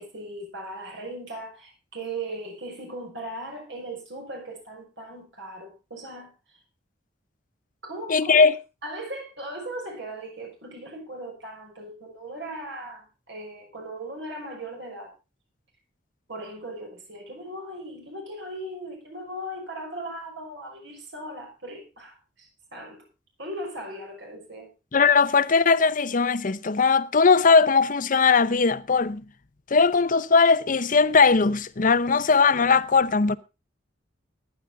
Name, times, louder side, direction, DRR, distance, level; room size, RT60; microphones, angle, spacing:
voice 1, 0.0-6.3 7.8-8.4 8.8-15.1 16.3-23.0 23.4-24.7, right 1 dB, 65° right, 5.9 m, -38 dB
voice 2, 8.1-8.6 24.9-29.2 29.7-33.4, left 4 dB, 45° left, 0.7 m, -19 dB
15.5 x 11.0 x 3.9 m
head